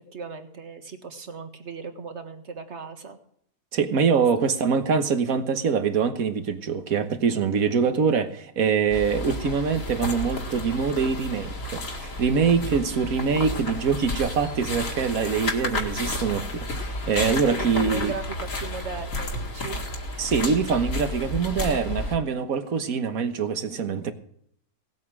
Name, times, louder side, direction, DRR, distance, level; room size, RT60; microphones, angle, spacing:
voice 1, 0.0-3.2 4.4-4.5 17.4-19.8, right 5 dB, 45° right, 1.8 m, -37 dB
voice 2, 3.7-18.1 20.2-24.1, right 6 dB, 60° right, 1.7 m, -24 dB
sound 1, 8.9-22.2, left 1 dB, 55° left, 2.4 m, -32 dB
18.0 x 8.5 x 6.1 m
omnidirectional pair, 1.7 m